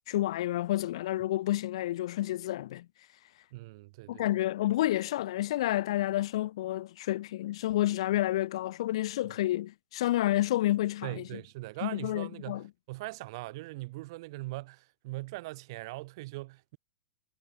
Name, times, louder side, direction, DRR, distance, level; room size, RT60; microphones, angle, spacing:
voice 1, 0.1-2.9 4.1-11.4 11.8-12.6, left 14 dB, 50° left, 0.5 m, -30 dB
voice 2, 3.5-4.3 11.0-16.8, right 21 dB, 35° right, 2.4 m, -41 dB
supercardioid pair, 180°, 4 cm